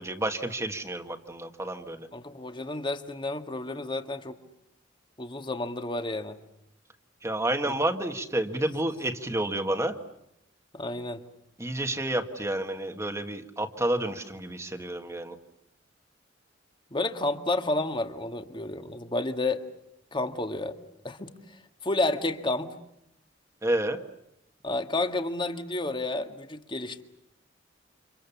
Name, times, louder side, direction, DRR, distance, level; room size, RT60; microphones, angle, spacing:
voice 1, 0.0-2.1 7.2-10.0 11.6-15.4 23.6-24.0, right 1 dB, 15° right, 5 dB, 1.7 m, -30 dB
voice 2, 2.1-4.4 5.2-6.4 10.7-11.2 16.9-19.6 20.1-20.8 21.0-22.8 24.6-27.0, left 2 dB, 25° left, 7 dB, 1.8 m, -31 dB
30.0 x 27.5 x 7.2 m, 0.78 s
head